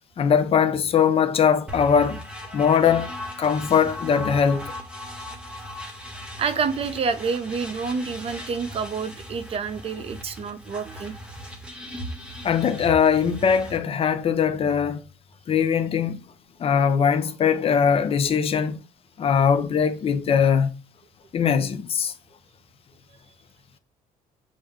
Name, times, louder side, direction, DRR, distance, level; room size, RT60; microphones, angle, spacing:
voice 1, 0.2-2.2 2.5-3.1 3.4-4.6 12.4-15.0 15.5-16.2 16.6-18.8 19.2-20.7 21.3-22.1, left 7 dB, 40° left, 0.6 m, -21 dB
sound 1, 1.7-13.8, equal, 5° right, 1.0 m, -38 dB
voice 2, 6.4-11.1, right 5 dB, 40° right, 0.5 m, -28 dB
6.3 x 2.1 x 3.5 m
cardioid pair, 105°, 16 cm